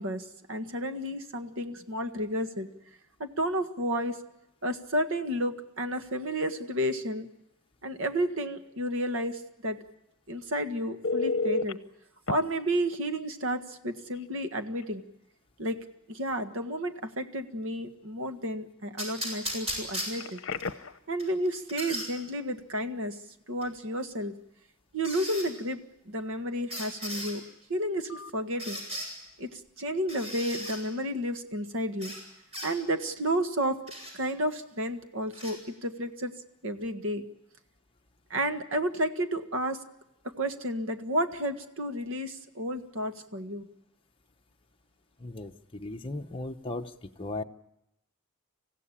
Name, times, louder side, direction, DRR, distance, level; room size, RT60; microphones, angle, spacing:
voice 1, 0.0-2.7 3.2-4.2 4.6-7.3 7.8-9.8 10.3-11.8 12.3-15.0 15.6-15.8 16.1-20.4 21.1-23.2 23.5-24.4 24.9-25.8 26.0-27.4 27.7-28.8 29.4-32.1 32.6-33.8 34.1-36.3 36.6-37.2 38.3-39.8 40.2-43.7, equal, 60° right, 7 dB, 1.7 m, -31 dB
Telephone, 11.0-11.7 12.3-12.4 14.1-14.3 14.7-14.8 20.1-21.0 28.1-28.3, left 3 dB, 60° left, 0.9 m, -31 dB
sound 1, 19.0-20.7 21.2-22.1 23.6-23.7 25.0-25.5 26.7-27.3 28.6-29.1 30.1-30.8 32.0-32.2 32.5-32.7 33.9-34.1 35.3-35.5, equal, 30° right, 7.5 m, -36 dB
voice 2, 45.2-47.4, left 2 dB, 25° left, 3 dB, 0.9 m, -37 dB
26.0 x 16.0 x 10.0 m, 0.90 s
head